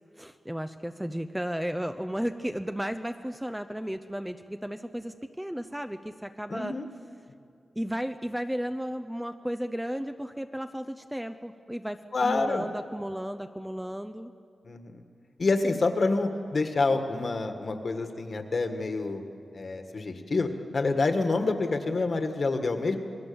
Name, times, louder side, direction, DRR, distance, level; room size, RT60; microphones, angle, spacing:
voice 1, 0.2-6.8 7.8-14.3, equal, 5° right, 8 dB, 0.6 m, -34 dB
voice 2, 6.5-6.8 12.1-12.7 14.6-15.0 15.4-19.2 19.5-23.0, left 3 dB, 50° left, 6 dB, 1.8 m, -27 dB
27.5 x 20.5 x 7.1 m, 2.4 s
wide cardioid pair, 135°, 0 cm